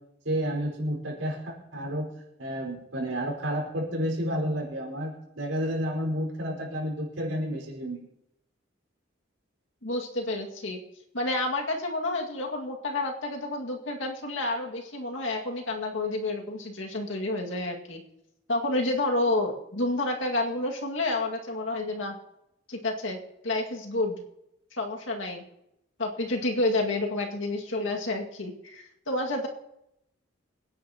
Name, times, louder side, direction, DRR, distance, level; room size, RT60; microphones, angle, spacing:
voice 1, 0.2-2.1 2.4-8.1, equal, 80° right, -1 dB, 5.0 m, -31 dB
voice 2, 9.8-10.8 11.1-18.0 18.5-22.2 22.7-24.2 24.7-25.4 26.0-29.5, left 2 dB, 80° left, 1 dB, 2.1 m, -29 dB
25.0 x 10.0 x 3.0 m, 0.82 s
head